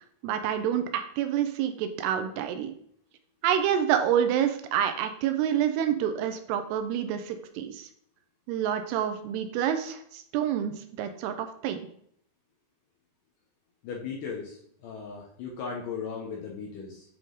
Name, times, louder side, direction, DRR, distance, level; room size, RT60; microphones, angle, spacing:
voice 1, 0.2-2.7 3.4-7.9 8.5-11.8, right 9 dB, 85° right, 8 dB, 2.6 m, -28 dB
voice 2, 13.8-17.0, left 5 dB, 75° left, -2 dB, 2.0 m, -37 dB
8.9 x 3.7 x 3.9 m, 0.66 s
omnidirectional pair, 4.8 m